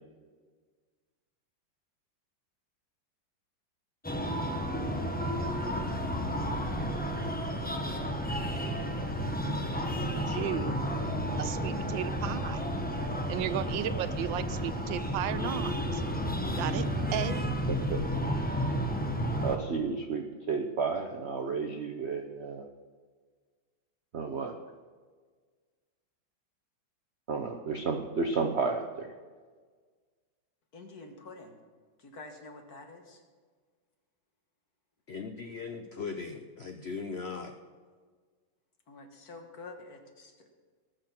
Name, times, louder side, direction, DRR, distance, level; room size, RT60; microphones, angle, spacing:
Breathing, 4.0-19.6, equal, 10° left, 0.5 m, -32 dB
voice 1, 10.0-10.8 11.4-12.6 13.3-16.0 16.5-16.9 17.1-17.5, right 11 dB, 80° right, 14 dB, 1.3 m, -34 dB
voice 2, 17.9-18.3 19.4-22.7 24.1-24.5 27.3-29.1, right 4 dB, 60° right, 4 dB, 0.7 m, -32 dB
voice 3, 30.7-31.6 32.0-33.2 38.9-40.5, left 3 dB, 50° left, 4 dB, 1.9 m, -48 dB
voice 4, 35.1-37.5, left 4 dB, 70° left, 6 dB, 0.6 m, -38 dB
19.5 x 6.6 x 5.9 m, 1.5 s
omnidirectional pair, 2.1 m